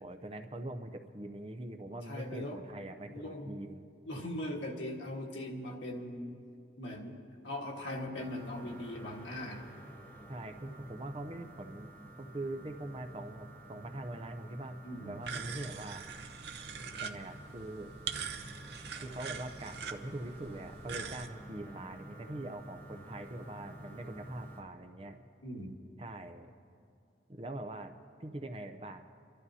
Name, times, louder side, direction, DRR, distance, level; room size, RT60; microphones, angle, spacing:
voice 1, 0.0-3.9 10.3-11.9 12.2-16.1 17.0-17.9 19.0-25.2 26.0-26.5 27.3-29.0, right 1 dB, 30° right, 6 dB, 0.6 m, -43 dB
voice 2, 2.1-2.6 3.1-3.6 4.0-6.4 6.8-7.2 7.4-9.7 14.8-15.1 25.4-25.7, left 1 dB, 85° left, 0 dB, 1.5 m, -40 dB
sound 1, 8.2-24.6, right 1 dB, 10° left, 1.0 m, -51 dB
sound 2, 15.2-21.3, right 6 dB, 65° right, 0.7 m, -43 dB
29.5 x 12.5 x 2.8 m, 2.4 s
head